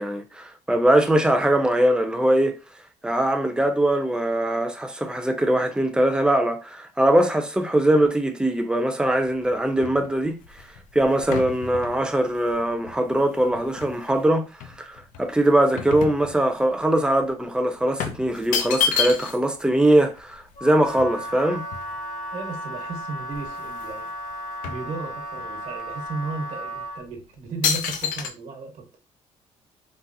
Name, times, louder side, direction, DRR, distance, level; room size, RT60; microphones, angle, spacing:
voice 1, 0.0-2.5 3.0-10.4 10.9-14.5 14.8-21.7, right 1 dB, 5° right, 0.7 m, -21 dB
sound 1, 9.3-14.2 14.6-16.8 17.1-17.3 18.0-19.6 19.9-20.0 20.2-22.3 22.9-23.0 23.2-24.0 24.3-25.5 26.1-26.2 26.9-27.1 27.6-28.3, left 7 dB, 85° left, 0.5 m, -30 dB
Wind instrument woodwind instrument, 20.6-27.1, equal, 70° left, 1.3 m, -35 dB
voice 2, 22.3-24.1 24.7-28.9, right 3 dB, 65° right, 1.2 m, -35 dB
4.1 x 2.0 x 2.6 m
supercardioid pair, 75°, 13 cm